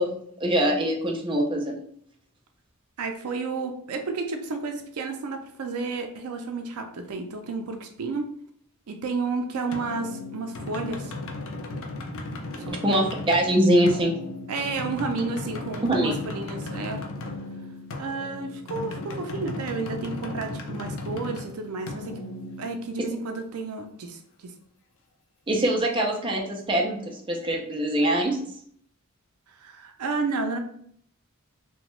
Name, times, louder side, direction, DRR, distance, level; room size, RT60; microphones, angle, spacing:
voice 1, 0.0-1.8 12.7-14.1 15.9-16.1 25.5-28.4, right 1 dB, 20° right, 0 dB, 0.5 m, -23 dB
voice 2, 3.0-8.2 8.9-11.1 12.7-12.8 14.5-17.0 18.0-22.2 22.6-24.5 29.5-30.6, right 4 dB, 75° right, 5 dB, 0.4 m, -31 dB
sound 1, 9.7-23.3, left 2 dB, 65° left, 0.5 m, -36 dB
2.8 x 2.2 x 3.0 m, 0.63 s
head